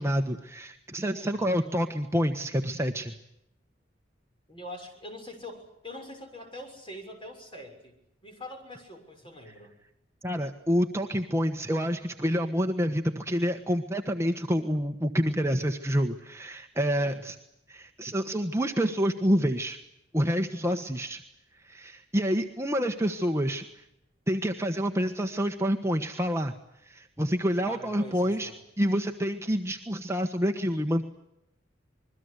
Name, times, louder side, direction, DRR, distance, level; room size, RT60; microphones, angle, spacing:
voice 1, 0.0-3.1 10.2-17.3 17.7-19.8 20.1-21.2 21.6-23.6 24.3-26.5 26.9-28.5 28.8-31.1, equal, 15° right, 4 dB, 1.3 m, -28 dB
voice 2, 1.1-1.5 4.5-9.7 17.0-17.3 27.6-28.6, left 1 dB, 25° left, 4 dB, 6.7 m, -44 dB
27.5 x 22.0 x 8.3 m, 0.80 s
head